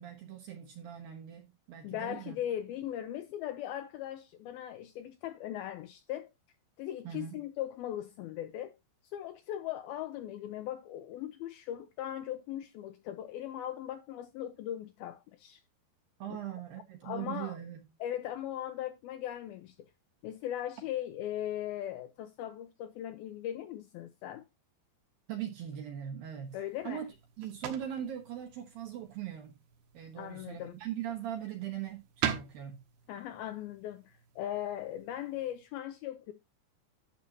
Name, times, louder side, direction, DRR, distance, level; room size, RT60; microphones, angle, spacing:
voice 1, 0.0-2.4 7.0-7.4 16.2-17.9 25.3-26.6 26.8-27.1 27.4-29.6 29.9-32.8, right 10 dB, 70° right, 2.6 m, -40 dB
voice 2, 1.8-6.3 6.8-8.7 9.0-15.6 17.0-17.6 18.0-19.9 20.2-24.4 26.5-27.0 30.2-30.7 33.1-36.3, left 11 dB, 80° left, 2.4 m, -39 dB
sound 1, 26.4-35.6, right 9 dB, 85° right, 3.5 m, -43 dB
11.5 x 7.8 x 2.8 m
omnidirectional pair, 4.8 m